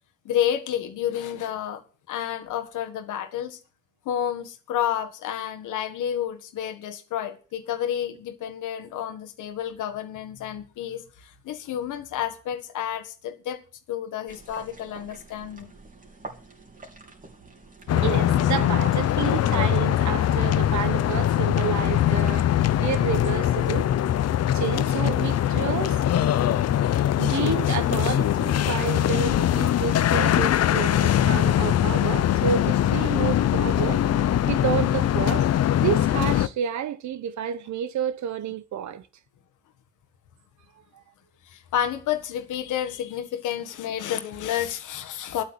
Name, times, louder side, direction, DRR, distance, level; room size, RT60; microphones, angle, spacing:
voice 1, 0.2-1.8 2.1-3.6 4.0-13.6 13.9-15.7 41.4-45.4, left 10 dB, 80° left, 1.7 m, -30 dB
sound 1, 14.3-24.1, right 3 dB, 25° right, 3.2 m, -47 dB
sound 2, 17.9-36.5, left 11 dB, 55° left, 0.7 m, -22 dB
voice 2, 17.9-23.9 24.5-26.0 27.2-34.0 34.5-35.5 35.8-39.0 40.9-41.0, right 9 dB, 70° right, 1.1 m, -30 dB
11.0 x 8.3 x 8.0 m
cardioid pair, 90°, 30 cm